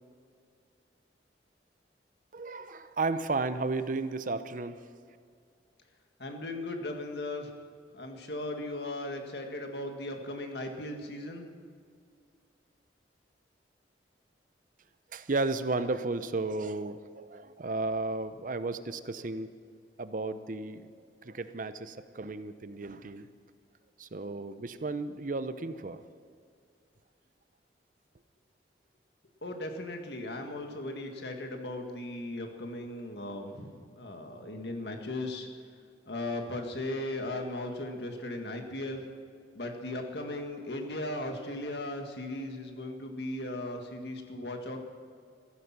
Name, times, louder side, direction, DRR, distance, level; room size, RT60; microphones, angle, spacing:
voice 1, 2.3-4.8 15.1-19.5 20.0-20.9 21.2-23.3 24.0-26.0, right 3 dB, 50° right, 11 dB, 0.7 m, -33 dB
voice 2, 6.2-7.5 7.9-11.5 29.4-35.5 36.1-39.1 39.6-44.8, left 1 dB, 70° left, 4 dB, 1.9 m, -37 dB
15.0 x 14.5 x 6.0 m, 2.2 s
head